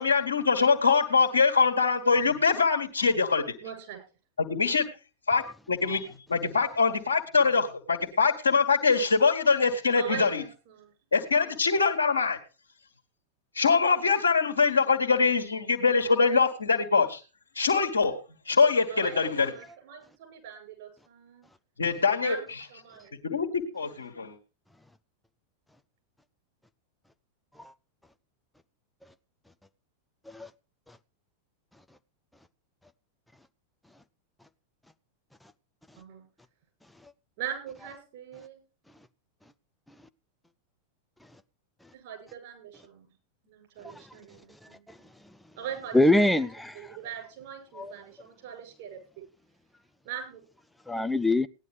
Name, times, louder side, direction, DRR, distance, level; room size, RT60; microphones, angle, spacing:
voice 1, 0.0-3.5 4.4-4.8 5.3-5.4 5.7-10.4 11.1-12.4 13.5-17.2 17.5-18.2 18.4-19.5 21.8-22.4 23.2-24.3, left 5 dB, 70° left, 1.7 m, -23 dB
voice 2, 3.6-4.0 9.9-10.9 11.4-11.6 18.9-21.4 22.2-23.2 36.0-36.2 37.4-38.6 41.9-43.1 43.4-44.9 45.6-46.0 46.3-46.4 46.7-49.0 50.0-50.4, right 9 dB, 50° right, 7.6 m, -41 dB
voice 3, 45.9-47.0 47.7-47.9 50.9-51.5, left 2 dB, 5° left, 0.5 m, -25 dB
17.5 x 10.5 x 3.3 m
figure-of-eight pair, 90°, 0 cm